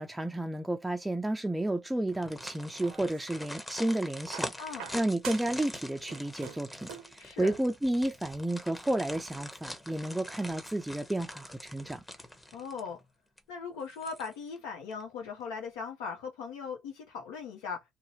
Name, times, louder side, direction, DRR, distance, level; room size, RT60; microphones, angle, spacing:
voice 1, 0.0-4.5 4.9-12.0, right 1 dB, 10° right, 0.3 m, -32 dB
sound 1, 2.1-13.0 13.4-13.5 13.9-14.6 14.9-15.0, left 1 dB, 15° left, 0.8 m, -44 dB
sound 2, 2.5-3.5 4.3-5.7 5.9-7.2 8.3-8.4, right 9 dB, 80° right, 0.6 m, -46 dB
voice 2, 4.6-4.9 7.2-7.5 12.5-13.0 13.5-17.8, left 5 dB, 85° left, 0.7 m, -39 dB
2.6 x 2.0 x 2.7 m
supercardioid pair, 70°, 0 cm